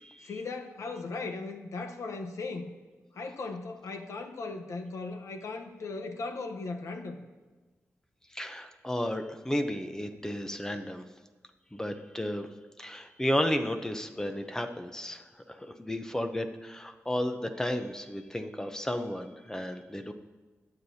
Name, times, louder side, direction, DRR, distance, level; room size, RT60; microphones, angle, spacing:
voice 1, 0.2-2.7 3.1-7.2, left 3 dB, 80° left, 5 dB, 0.9 m, -37 dB
voice 2, 8.3-11.0 11.7-12.5 12.8-20.1, left 1 dB, 10° left, 7 dB, 0.7 m, -33 dB
20.5 x 8.0 x 2.8 m, 1.3 s
wide cardioid pair, 105°, 5 cm